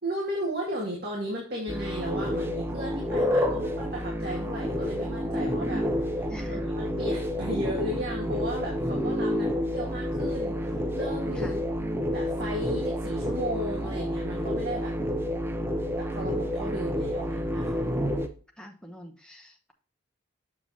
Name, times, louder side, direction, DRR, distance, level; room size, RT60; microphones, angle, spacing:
voice 1, 0.0-5.8 6.1-11.6 12.1-14.9 16.0-17.8, equal, 50° right, -2 dB, 1.8 m, -35 dB
sound 1, 1.7-18.3, equal, 10° right, 0.6 m, -29 dB
voice 2, 6.3-6.7 11.3-11.6 18.6-19.7, equal, 5° left, 3 dB, 1.0 m, -46 dB
7.3 x 6.8 x 2.7 m, 0.39 s
head